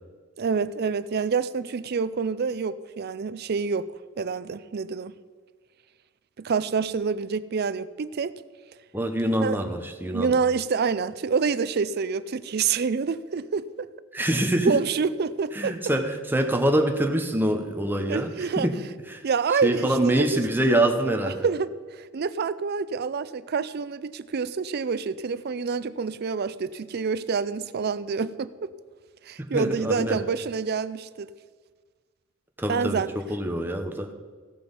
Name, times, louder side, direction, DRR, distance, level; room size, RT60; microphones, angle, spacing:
voice 1, 0.4-3.9 4.2-5.1 6.4-8.3 9.4-9.6 10.1-13.9 14.6-15.8 18.1-18.7 19.2-20.2 21.4-28.7 29.3-31.3 32.7-33.1, right 5 dB, 50° right, 15 dB, 0.4 m, -27 dB
voice 2, 8.9-10.3 14.1-14.8 15.5-18.8 19.1-19.2 19.6-21.4 29.5-30.2 32.6-33.0 33.3-34.1, right 1 dB, 10° right, 4 dB, 1.0 m, -25 dB
16.5 x 6.0 x 5.3 m, 1.5 s
head